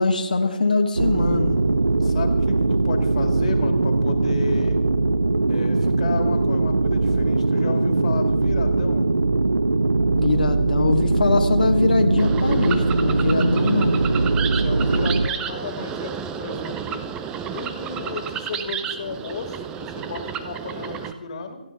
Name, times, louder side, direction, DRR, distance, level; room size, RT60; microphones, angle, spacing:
voice 1, 0.0-1.6 10.1-14.0, left 3 dB, 70° left, 4 dB, 1.7 m, -22 dB
sound 1, 1.0-15.3, right 3 dB, 80° right, 0.7 m, -21 dB
voice 2, 2.0-4.8 5.5-9.0 14.3-17.0 17.5-21.6, left 4 dB, 45° left, 6 dB, 2.3 m, -33 dB
sound 2, 12.2-21.1, right 8 dB, 15° right, 0.7 m, -31 dB
28.0 x 10.0 x 3.7 m, 1.1 s
figure-of-eight pair, 140°, 5 cm